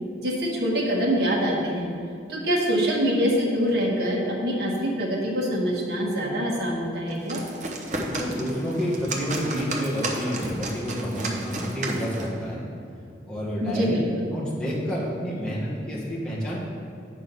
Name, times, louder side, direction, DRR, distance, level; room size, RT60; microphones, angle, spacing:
voice 1, 0.2-1.9 2.3-7.4 13.6-14.3, equal, 60° right, -2 dB, 1.6 m, -25 dB
sound 1, 7.1-12.4, right 2 dB, 40° right, 0.9 m, -33 dB
voice 2, 8.0-12.1 12.4-12.7 13.2-13.9 14.3-16.6, equal, 5° left, -8 dB, 1.6 m, -29 dB
8.5 x 5.1 x 5.5 m, 2.5 s
head